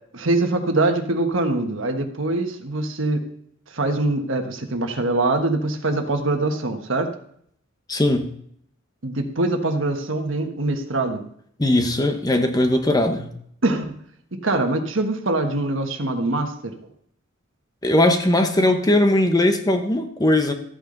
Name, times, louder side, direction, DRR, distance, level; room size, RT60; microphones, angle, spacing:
voice 1, 0.1-3.2 3.7-7.1 9.0-11.2 13.6-14.0 14.3-16.7, right 2 dB, 65° right, 5 dB, 1.3 m, -23 dB
voice 2, 7.9-8.3 11.6-13.3 17.8-20.5, left 1 dB, 20° left, 6 dB, 0.9 m, -19 dB
13.5 x 8.7 x 3.9 m, 0.67 s
head